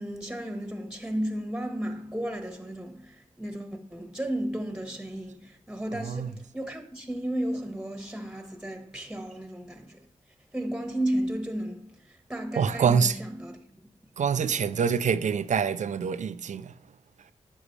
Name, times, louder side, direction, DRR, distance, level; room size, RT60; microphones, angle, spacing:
voice 1, 0.0-10.1 10.5-13.8 14.3-14.7, right 1 dB, 5° right, 1.4 m, -34 dB
voice 2, 5.9-6.3 12.6-13.2 14.2-16.7, right 6 dB, 70° right, 0.5 m, -26 dB
9.8 x 6.3 x 3.3 m
cardioid pair, 50°, 13 cm